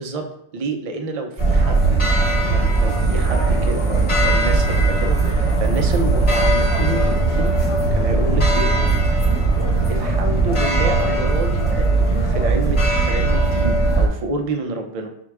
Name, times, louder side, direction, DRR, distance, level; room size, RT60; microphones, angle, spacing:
voice 1, 0.0-1.9 2.4-7.6 7.9-8.7 9.9-15.1, right 2 dB, 50° right, 4 dB, 0.4 m, -28 dB
sound 1, 1.4-14.1, right 3 dB, 30° left, 1.0 m, -18 dB
4.8 x 2.2 x 4.6 m, 0.72 s
omnidirectional pair, 1.2 m